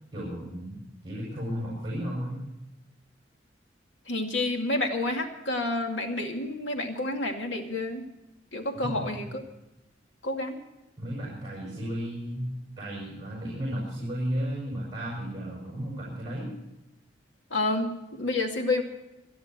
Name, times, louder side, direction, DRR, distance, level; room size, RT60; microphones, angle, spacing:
voice 1, 0.1-2.4 8.8-9.2 11.0-12.5 12.8-16.5, equal, 25° right, -4 dB, 7.1 m, -34 dB
voice 2, 4.1-8.0 8.5-9.4 10.2-10.6 17.5-18.8, left 2 dB, 85° left, 3 dB, 2.5 m, -29 dB
27.0 x 10.5 x 4.5 m, 0.94 s
head